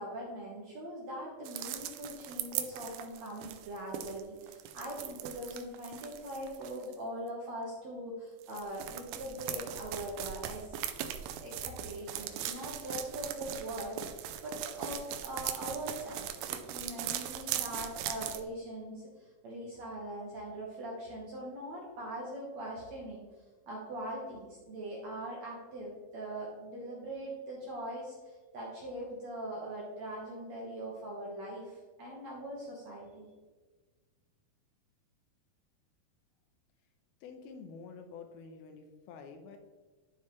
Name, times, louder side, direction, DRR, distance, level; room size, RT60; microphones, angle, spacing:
voice 1, 0.0-10.7 11.4-23.2 23.7-33.3, right 1 dB, 65° right, -4 dB, 1.8 m, -41 dB
sound 1, 1.5-7.0 8.4-18.4, right 11 dB, 80° right, 2.1 m, -39 dB
voice 2, 37.2-39.6, left 5 dB, 80° left, 5 dB, 2.6 m, -48 dB
11.0 x 4.6 x 3.1 m, 1.3 s
omnidirectional pair, 4.4 m